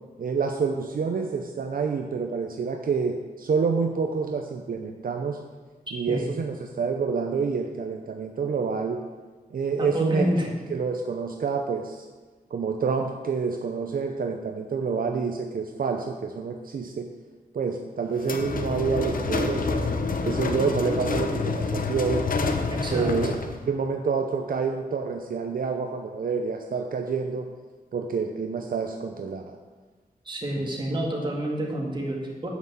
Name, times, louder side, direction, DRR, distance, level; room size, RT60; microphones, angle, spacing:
voice 1, 0.2-5.4 5.9-9.0 9.5-10.3 10.7-12.1 12.5-17.1 17.5-20.0 20.2-22.2 22.9-23.4 23.7-27.5 27.9-29.6, right 5 dB, 65° right, 4 dB, 0.7 m, -28 dB
voice 2, 9.8-10.5 22.7-23.3 30.3-32.5, right 1 dB, 30° right, -1 dB, 2.1 m, -28 dB
sound 1, 18.2-23.7, left 4 dB, 65° left, 0.9 m, -28 dB
9.6 x 6.0 x 7.4 m, 1.4 s
wide cardioid pair, 145°, 16 cm